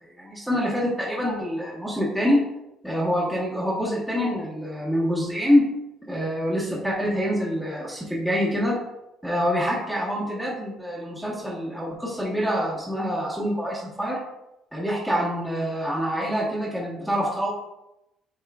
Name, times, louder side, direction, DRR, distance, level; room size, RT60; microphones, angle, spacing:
voice 1, 0.0-2.4 2.8-5.6 6.1-8.8 9.2-14.2 14.7-17.5, equal, ahead, -7 dB, 1.3 m, -25 dB
8.3 x 4.8 x 2.4 m, 0.88 s
cardioid pair, 160°, 0 cm